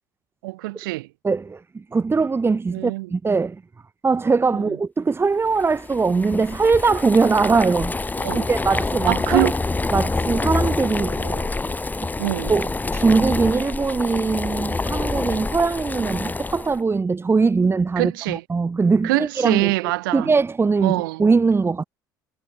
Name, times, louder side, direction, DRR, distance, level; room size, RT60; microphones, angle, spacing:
voice 1, 0.4-1.1 2.7-3.1 4.5-4.6 8.2-8.5 9.1-9.5 11.0-11.5 12.2-12.5 18.0-18.4 19.0-20.3 20.8-21.2, right 21 dB, 70° right, 5.5 m, -25 dB
voice 2, 1.2-3.6 4.0-7.9 8.3-9.5 9.9-11.1 12.0-12.1 12.5-19.7 20.1-21.8, right 4 dB, 20° right, 2.0 m, -21 dB
Boiling, 5.5-16.8, left 3 dB, 15° left, 2.4 m, -26 dB
figure-of-eight pair, 65°, 12 cm